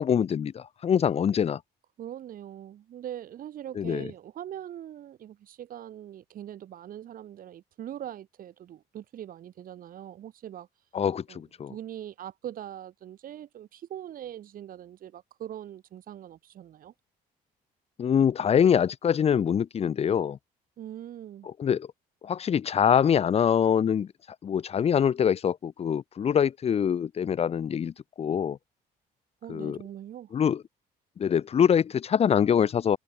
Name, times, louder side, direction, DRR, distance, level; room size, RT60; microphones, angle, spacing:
voice 1, 0.0-1.6 3.8-4.0 10.9-11.7 18.0-20.4 21.6-21.9 22.2-24.1 24.4-27.9 28.2-28.6 29.5-29.8 30.3-30.6 31.2-33.0, left 8 dB, 35° left, 0.9 m, -24 dB
voice 2, 2.0-10.7 11.3-16.9 20.8-21.5 29.4-30.3, right 11 dB, 55° right, 2.3 m, -42 dB
cardioid pair, 110°, 17 cm